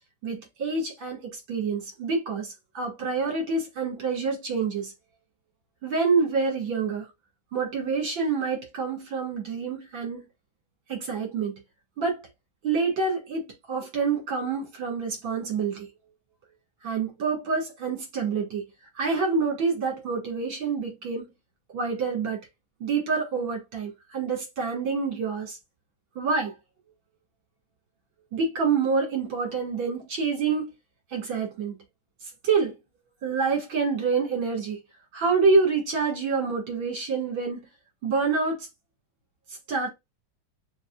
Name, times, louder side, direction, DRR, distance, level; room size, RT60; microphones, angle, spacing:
voice 1, 0.2-4.9 5.8-7.0 7.5-10.3 10.9-11.5 12.0-12.2 12.6-15.9 16.8-18.6 19.0-21.2 21.7-22.4 22.8-25.6 26.2-26.5 28.3-30.7 31.1-31.7 32.4-32.7 33.2-34.8 35.1-37.7 38.0-38.6 39.7-39.9, right 4 dB, 75° right, 2.8 m, -27 dB
6.5 x 2.5 x 2.4 m
omnidirectional pair, 2.1 m